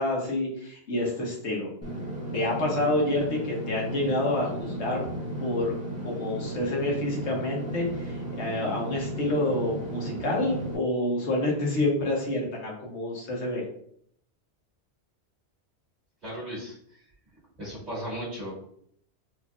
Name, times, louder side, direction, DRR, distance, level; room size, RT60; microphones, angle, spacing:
voice 1, 0.0-1.7 2.3-5.0 5.4-5.7 6.0-13.6, left 1 dB, 80° left, -2 dB, 1.3 m, -28 dB
Engine / Mechanisms, 1.8-10.8, right 1 dB, 15° left, 0.8 m, -35 dB
voice 2, 16.2-17.0 17.6-18.7, equal, 40° right, -7 dB, 1.6 m, -36 dB
4.4 x 2.5 x 2.4 m, 0.67 s
omnidirectional pair, 1.1 m